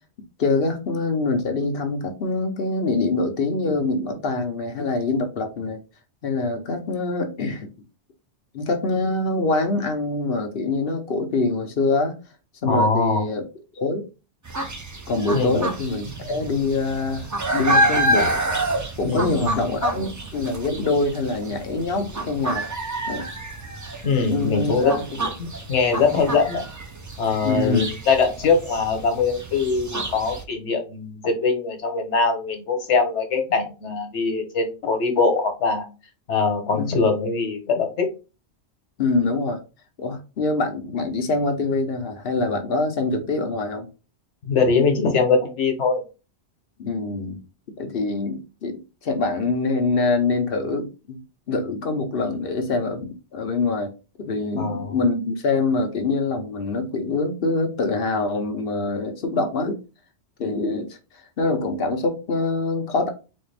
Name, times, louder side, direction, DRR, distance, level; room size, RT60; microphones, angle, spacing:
voice 1, 0.4-5.8 6.2-7.7 8.5-12.1 12.6-13.4 13.7-14.0 15.1-18.4 19.0-22.6 23.1-23.2 24.1-25.0 27.4-27.9 36.7-37.0 39.0-39.6 40.0-43.9 46.8-47.4 47.8-51.2 51.5-53.9 54.2-59.8 60.4-63.1, left 3 dB, 60° left, 0.9 m, -24 dB
voice 2, 12.6-13.2 15.3-15.6 19.1-19.6 24.0-26.6 27.2-35.8 36.3-38.1 44.4-46.0 54.6-54.9, left 4 dB, 85° left, 1.2 m, -22 dB
sound 1, 14.5-30.4, right 1 dB, 30° right, 0.3 m, -28 dB
4.1 x 2.4 x 3.2 m
omnidirectional pair, 1.1 m